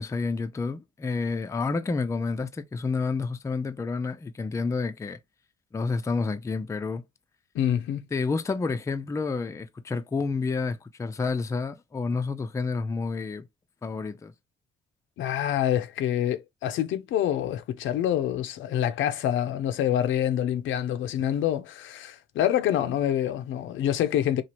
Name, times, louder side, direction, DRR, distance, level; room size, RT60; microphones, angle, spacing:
voice 1, 0.0-5.2 5.7-7.0 8.1-13.5 13.8-14.3, left 4 dB, 15° left, 0.3 m, -29 dB
voice 2, 7.5-8.1 15.2-24.4, left 11 dB, 75° left, 0.5 m, -26 dB
2.9 x 2.4 x 2.9 m
cardioid pair, 90°, 20 cm